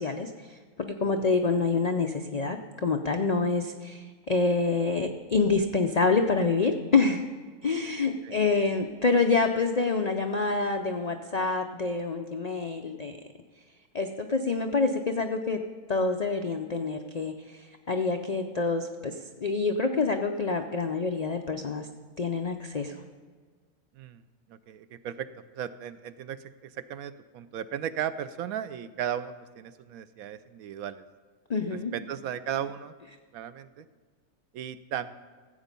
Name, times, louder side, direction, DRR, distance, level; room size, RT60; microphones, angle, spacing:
voice 1, 0.0-7.2 7.6-13.2 13.9-15.6 15.9-17.6 17.9-21.9 22.2-22.9 31.5-31.9, left 4 dB, 85° left, 5 dB, 0.3 m, -27 dB
voice 2, 24.5-25.3 25.5-31.0 31.7-32.9 33.3-33.9 34.5-35.2, right 9 dB, 75° right, 13 dB, 1.0 m, -36 dB
15.0 x 8.2 x 5.3 m, 1.5 s
omnidirectional pair, 1.6 m